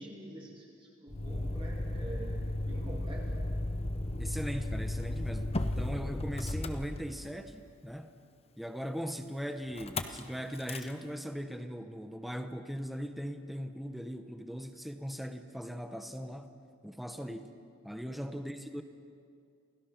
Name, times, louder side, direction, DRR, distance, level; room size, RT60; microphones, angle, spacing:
voice 1, 0.0-3.5 18.0-18.2, right 1 dB, 25° right, -3 dB, 2.6 m, -46 dB
Motor vehicle (road), 1.1-7.5 9.8-10.2 10.5-10.9, left 1 dB, 25° left, 0.8 m, -35 dB
voice 2, 4.2-8.1 8.6-16.5 16.8-17.5 17.8-18.8, equal, ahead, 7 dB, 0.9 m, -39 dB
28.5 x 16.5 x 5.9 m, 2.3 s
head